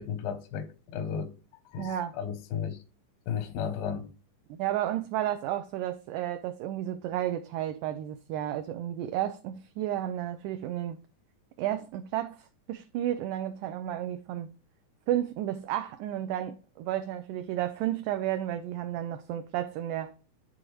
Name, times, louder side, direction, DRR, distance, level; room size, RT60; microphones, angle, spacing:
voice 1, 0.0-1.3 1.7-2.8 3.3-4.1, left 7 dB, 90° left, 2.5 m, -34 dB
voice 2, 1.8-2.1 4.6-11.0 11.6-14.5 15.1-20.1, right 12 dB, 80° right, 2.0 m, -32 dB
11.0 x 3.9 x 3.0 m
omnidirectional pair, 3.9 m